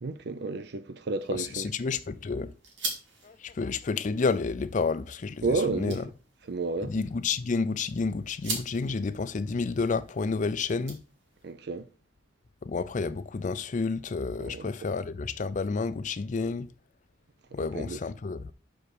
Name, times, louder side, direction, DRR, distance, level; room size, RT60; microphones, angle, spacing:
voice 1, 0.0-1.7 5.4-6.0 6.5-6.9 11.4-11.9 14.4-14.7 17.6-18.0, right 3 dB, 65° right, 0.6 m, -31 dB
sound 1, 1.2-11.5, right 3 dB, 85° right, 2.1 m, -43 dB
voice 2, 1.3-2.5 3.2-6.0 6.8-11.0 12.6-16.7 17.5-18.5, left 4 dB, 45° left, 0.4 m, -30 dB
6.2 x 4.8 x 4.9 m
head